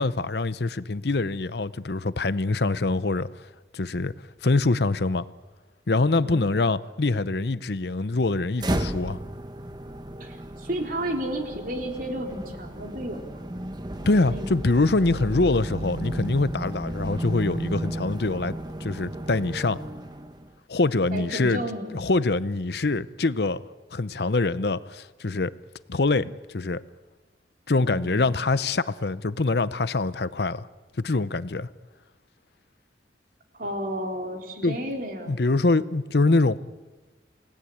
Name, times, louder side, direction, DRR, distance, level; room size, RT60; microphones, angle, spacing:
voice 1, 0.0-3.3 3.7-4.1 4.4-5.3 5.9-9.2 14.1-19.8 20.7-21.6 21.9-23.6 23.9-25.5 25.9-26.8 27.7-30.7 31.0-31.7 34.6-34.8 35.3-36.6, left 3 dB, 65° left, 0.8 m, -24 dB
voice 2, 6.2-6.6 10.2-13.4 14.2-14.5 21.1-22.0 27.8-28.3 33.6-35.5, right 1 dB, 50° right, 3.7 m, -32 dB
sound 1, 8.6-20.6, right 1 dB, 25° right, 1.1 m, -34 dB
28.0 x 18.0 x 8.6 m
head